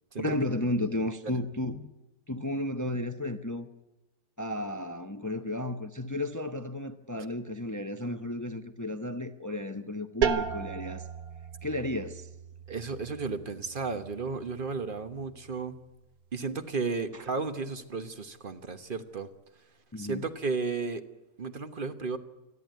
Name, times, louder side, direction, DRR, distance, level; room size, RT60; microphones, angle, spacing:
voice 1, 0.2-1.9 2.3-3.7 4.4-11.1 11.6-12.3 17.1-17.2 19.9-20.3, left 1 dB, 15° left, 0.6 m, -33 dB
sound 1, 10.2-15.7, right 7 dB, 75° right, 1.6 m, -36 dB
voice 2, 12.7-15.8 16.3-19.3 20.0-21.0 21.4-22.2, right 4 dB, 40° right, 1.3 m, -33 dB
27.0 x 11.0 x 9.4 m
omnidirectional pair, 1.6 m